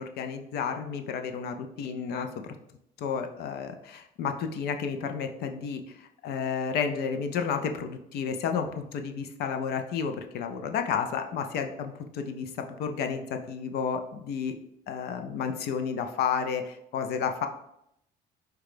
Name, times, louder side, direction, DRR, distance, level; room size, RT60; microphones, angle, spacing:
voice 1, 0.0-2.6 3.0-12.5 12.8-14.5 14.9-17.5, left 6 dB, 75° left, 6 dB, 0.5 m, -31 dB
4.8 x 2.3 x 4.8 m, 0.78 s
cardioid pair, 110°, 17 cm